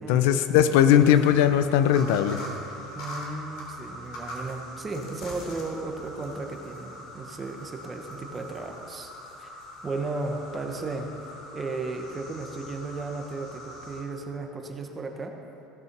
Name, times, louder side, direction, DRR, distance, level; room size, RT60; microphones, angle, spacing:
voice 1, 0.1-2.4, left 10 dB, 85° left, 11 dB, 0.6 m, -19 dB
sound 1, 0.9-14.0, equal, 60° left, 2.8 m, -42 dB
voice 2, 2.9-9.1 9.4-9.5 9.8-11.1 11.5-15.3, right 3 dB, 20° right, 4 dB, 1.0 m, -35 dB
16.0 x 7.1 x 6.0 m, 2.9 s
cardioid pair, 160°, 0 cm